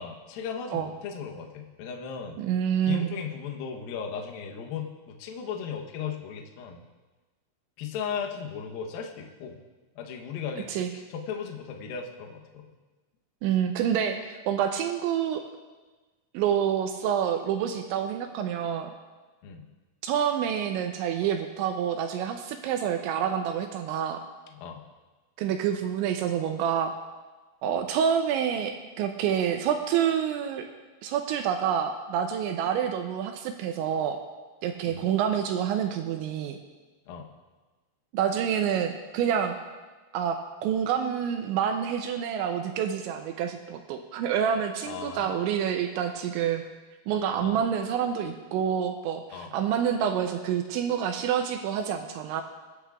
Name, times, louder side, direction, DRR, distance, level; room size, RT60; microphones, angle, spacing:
voice 1, 0.0-2.4 2.8-6.8 7.8-9.6 10.0-12.7 19.4-19.7 24.5-24.8 34.8-35.1 37.1-37.3 44.8-45.3 47.4-47.6 49.3-49.5, left 6 dB, 80° left, 2 dB, 2.1 m, -36 dB
voice 2, 2.4-3.1 10.7-10.9 13.4-15.4 16.3-18.9 20.0-24.2 25.4-26.9 27.6-30.7 31.0-34.2 34.6-36.6 38.1-39.6 40.1-46.6 47.1-52.4, right 8 dB, 85° right, 5 dB, 2.7 m, -27 dB
22.5 x 10.0 x 2.4 m, 1.3 s
omnidirectional pair, 5.7 m